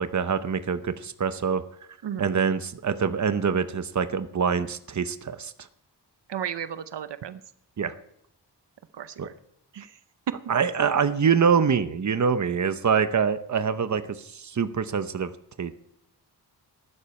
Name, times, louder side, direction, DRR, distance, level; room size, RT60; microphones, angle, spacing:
voice 1, 0.0-1.6 2.2-5.5 7.8-7.9 9.2-9.3 10.5-15.3 15.6-15.7, right 6 dB, 45° right, 11 dB, 0.8 m, -25 dB
voice 2, 6.3-7.4 8.9-9.3 9.7-10.0, right 9 dB, 80° right, 12 dB, 0.7 m, -34 dB
14.5 x 12.5 x 4.3 m, 0.73 s
wide cardioid pair, 140°, 41 cm